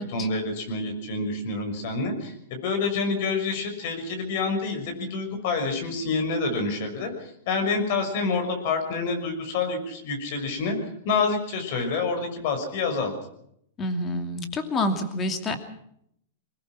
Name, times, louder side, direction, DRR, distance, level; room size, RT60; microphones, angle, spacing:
voice 1, 0.0-10.8 11.0-13.1, left 4 dB, 50° left, 6 dB, 6.3 m, -27 dB
voice 2, 13.8-15.6, left 1 dB, 20° left, 8 dB, 2.7 m, -28 dB
23.0 x 20.0 x 6.1 m, 0.71 s
supercardioid pair, 150°, 0 cm